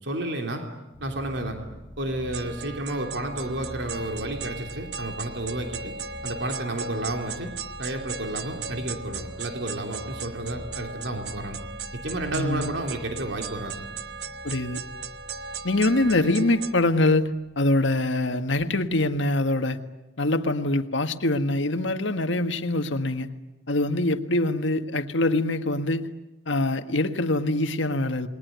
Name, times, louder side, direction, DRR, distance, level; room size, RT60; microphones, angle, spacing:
voice 1, 0.0-0.6 1.0-1.6 2.0-5.9 6.2-7.5 7.8-11.6 11.9-13.9, right 1 dB, 70° right, 3.4 m, -31 dB
sound 1, 0.9-17.6, left 1 dB, 5° left, 3.9 m, -45 dB
sound 2, 2.3-16.7, right 5 dB, 55° right, 1.2 m, -37 dB
voice 2, 12.3-12.7 14.4-14.8 15.6-17.3 17.5-19.8 20.2-23.3 23.7-26.1 26.5-28.3, left 2 dB, 80° left, 1.7 m, -24 dB
29.0 x 21.5 x 9.5 m
head